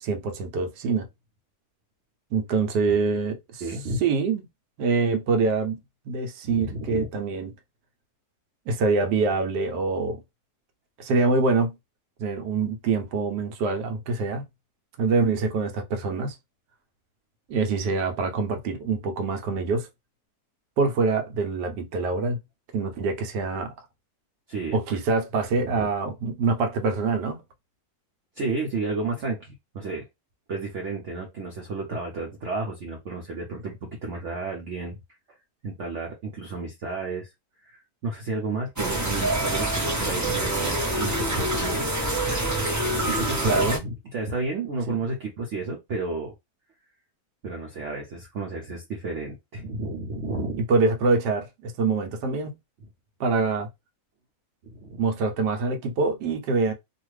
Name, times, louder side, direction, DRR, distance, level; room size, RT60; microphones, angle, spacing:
voice 1, 0.0-1.1 2.3-3.6 4.0-4.4 4.8-5.8 6.1-7.5 8.7-10.2 11.0-11.8 12.2-14.4 15.0-16.3 17.5-19.9 20.8-22.4 22.7-23.7 24.7-27.4 43.4-43.8 44.9-45.0 50.6-52.5 53.2-53.7 55.0-56.7, right 4 dB, 90° right, 1.3 m, -25 dB
voice 2, 3.6-4.0 6.4-7.1 24.5-24.8 25.6-25.8 28.4-30.0 30.5-34.9 35.6-37.3 37.6-41.8 43.0-46.3 47.4-50.6 54.6-55.1, right 3 dB, 60° right, 0.9 m, -32 dB
sound 1, 38.8-43.8, right 1 dB, 20° right, 0.5 m, -26 dB
2.7 x 2.4 x 3.1 m
omnidirectional pair, 1.7 m